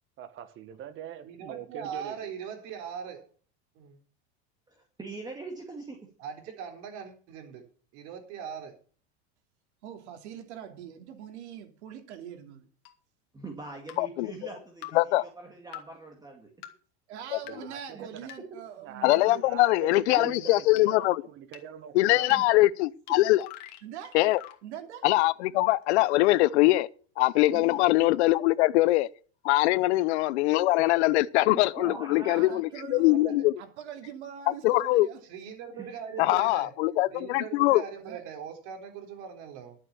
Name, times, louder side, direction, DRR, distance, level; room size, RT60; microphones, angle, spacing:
voice 1, 0.2-2.2 17.4-18.0 18.8-22.4, right 9 dB, 35° right, 1.6 m, -43 dB
voice 2, 1.2-3.3 3.7-4.0 6.2-7.6 7.9-8.8 33.1-33.5 35.2-36.7 37.1-39.8, right 7 dB, 55° right, 4.1 m, -40 dB
voice 3, 4.7-6.0 13.3-16.5 17.9-18.1 20.2-20.3 22.3-22.4 31.5-32.5 35.7-36.3, right 3 dB, 10° right, 2.2 m, -42 dB
voice 4, 9.8-12.7 17.1-19.4 23.8-24.2 24.6-25.0 27.5-27.9 29.7-29.9 32.3-33.3 33.6-35.2 38.0-38.2, right 9 dB, 90° right, 3.0 m, -43 dB
sound 1, 12.9-13.0 13.9-14.0 14.8-14.9 15.7-15.8 16.6-16.7 17.5-17.6 18.3-18.4 19.1-19.2 19.9-20.0 20.8-20.9 21.5-21.6 22.3-22.4 23.1-23.2 23.4-24.6, left 14 dB, 50° left, 2.0 m, -44 dB
voice 5, 14.0-14.3 14.9-15.2 17.3-17.4 19.0-21.2 21.9-23.5 24.1-24.4 25.0-26.9 27.2-29.1 29.4-33.5 34.5-35.1 36.2-37.8, left 18 dB, 80° left, 0.8 m, -23 dB
12.0 x 7.4 x 6.9 m
supercardioid pair, 145°, 33 cm